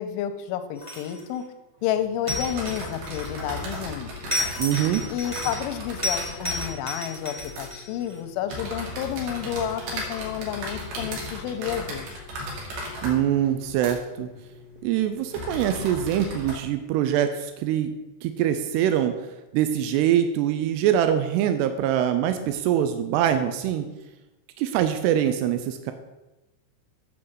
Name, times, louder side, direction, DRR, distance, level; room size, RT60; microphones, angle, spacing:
voice 1, 0.0-1.4 1.8-4.3 5.1-12.1, left 10 dB, 85° left, 8 dB, 3.1 m, -30 dB
sound 1, 0.7-1.3 2.3-3.6 4.3-5.7 6.0-8.2, left 1 dB, 25° right, 0.6 m, -31 dB
sound 2, 1.8-16.5, equal, 70° right, 4.4 m, -36 dB
voice 2, 4.6-5.1 13.0-14.3 14.8-17.9 18.2-19.2 19.5-23.9 24.6-25.9, right 10 dB, 85° right, 8 dB, 2.4 m, -23 dB
8.8 x 5.7 x 8.0 m, 1.0 s
omnidirectional pair, 5.5 m